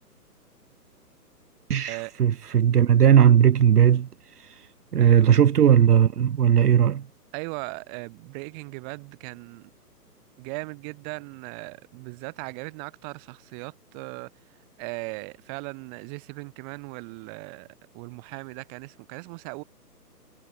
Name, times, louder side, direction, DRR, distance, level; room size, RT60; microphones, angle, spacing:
voice 1, 1.7-4.1 4.4-4.6 4.9-7.0, right 9 dB, 70° right, 0.9 m, -18 dB
voice 2, 5.0-5.4 7.3-9.7 10.4-14.3 14.8-17.7 17.9-19.6, right 34 dB, 30° right, 7.2 m, -38 dB
figure-of-eight pair, 135°, 48 cm